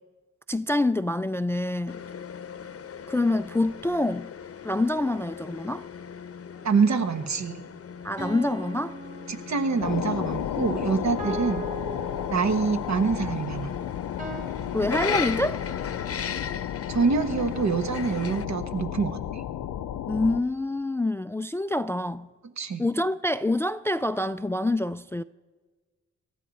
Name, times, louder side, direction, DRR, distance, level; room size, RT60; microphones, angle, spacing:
voice 1, 0.5-2.0 3.1-4.3 4.6-5.9 8.0-9.0 14.7-15.6 20.1-22.3 22.8-25.2, left 2 dB, 10° left, 0.3 m, -26 dB
sound 1, 1.9-18.5, left 7 dB, 50° left, 0.8 m, -37 dB
sound 2, 6.5-6.7 8.2-9.9 11.2-12.9 14.2-15.7, right 2 dB, 25° right, 2.2 m, -39 dB
voice 2, 6.6-7.6 9.3-11.6 12.3-13.7 16.9-19.4 22.6-22.8, right 5 dB, 65° right, 1.4 m, -26 dB
sound 3, 9.8-20.4, left 11 dB, 90° left, 0.6 m, -33 dB
18.0 x 14.0 x 4.2 m
supercardioid pair, 50°, 30 cm